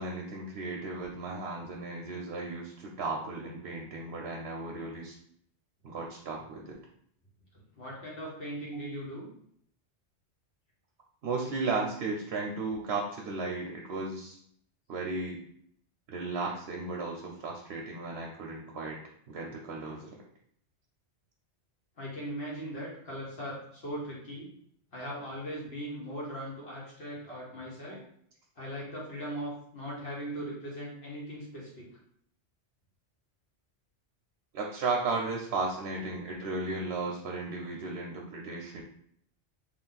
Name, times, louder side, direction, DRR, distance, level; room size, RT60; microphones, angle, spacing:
voice 1, 0.0-5.2 5.8-6.8 11.2-14.4 14.9-15.4 16.1-19.0 19.3-20.2 27.9-28.0 34.5-38.8, right 3 dB, 65° right, 0 dB, 0.8 m, -35 dB
voice 2, 7.8-9.3 22.0-24.5 24.9-28.0 28.6-31.9, equal, 60° left, -5 dB, 1.5 m, -39 dB
3.4 x 2.6 x 3.9 m, 0.67 s
omnidirectional pair, 1.2 m